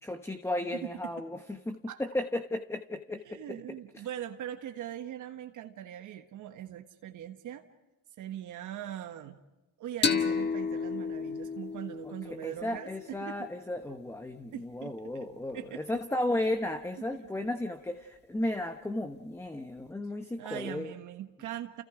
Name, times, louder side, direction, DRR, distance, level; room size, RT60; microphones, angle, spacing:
voice 1, 0.0-3.6 12.3-20.9, left 1 dB, 5° left, 7 dB, 1.1 m, -34 dB
voice 2, 0.8-1.1 1.9-2.0 3.2-7.6 8.2-9.4 9.8-13.5 14.5-15.3 15.5-15.8 17.0-17.3 20.4-21.8, right 11 dB, 55° right, 6 dB, 1.4 m, -41 dB
sound 1, 10.0-13.4, left 5 dB, 30° left, 1.7 m, -32 dB
30.0 x 29.5 x 5.0 m, 1.0 s
supercardioid pair, 105°, 36 cm